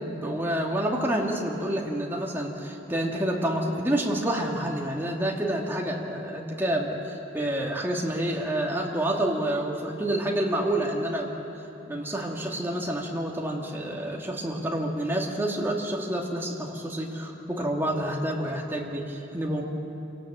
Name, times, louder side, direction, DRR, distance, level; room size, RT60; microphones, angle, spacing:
voice 1, 0.1-11.4 11.8-19.6, right 1 dB, 10° right, -1 dB, 2.3 m, -28 dB
26.0 x 18.0 x 7.7 m, 3.0 s
head